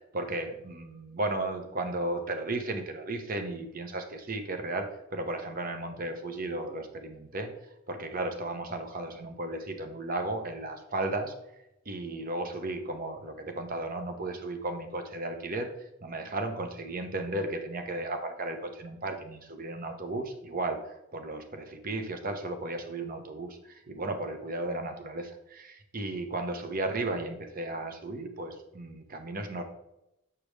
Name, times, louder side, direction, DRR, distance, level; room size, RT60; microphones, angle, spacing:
voice 1, 0.1-7.5 7.9-11.3 11.9-15.7 16.0-29.6, right 2 dB, 45° right, 6 dB, 0.9 m, -34 dB
6.8 x 6.3 x 3.3 m, 0.86 s
head